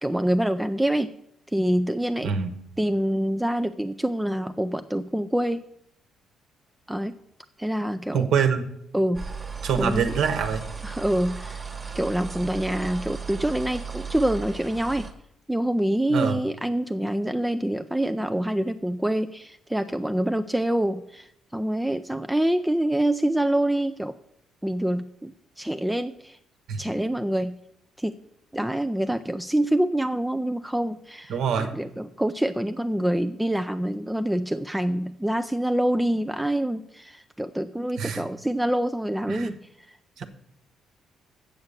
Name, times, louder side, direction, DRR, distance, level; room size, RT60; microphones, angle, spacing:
voice 1, 0.0-1.1 1.5-2.3 2.8-5.6 6.9-7.1 7.6-8.3 8.9-9.3 9.8-10.1 10.8-11.6 11.9-15.1 15.5-24.1 24.6-26.4 26.8-27.5 28.0-28.1 28.5-39.5 39.9-40.0, right 1 dB, 5° right, 8 dB, 0.3 m, -26 dB
voice 2, 2.2-2.5 8.1-8.7 9.6-10.6 16.1-16.4 26.7-26.8 31.3-31.7 38.0-38.2 39.3-39.5 40.2-40.3, right 6 dB, 70° right, 7 dB, 1.1 m, -25 dB
sound 1, 9.1-15.1, right 5 dB, 25° right, 1.4 m, -36 dB
8.2 x 7.0 x 6.6 m, 0.75 s
cardioid pair, 125°, 0 cm